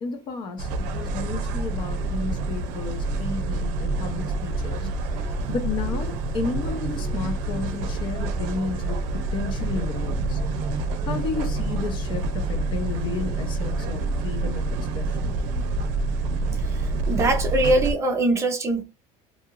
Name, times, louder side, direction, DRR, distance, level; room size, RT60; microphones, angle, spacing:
voice 1, 0.0-9.0 9.3-10.4 11.0-14.7 14.9-15.4, left 4 dB, 35° left, 0.5 m, -32 dB
sound 1, 0.6-17.9, right 2 dB, 70° right, 0.5 m, -27 dB
voice 2, 16.8-18.8, right 2 dB, 20° right, 0.5 m, -22 dB
2.7 x 2.3 x 2.9 m
cardioid pair, 170°, 14 cm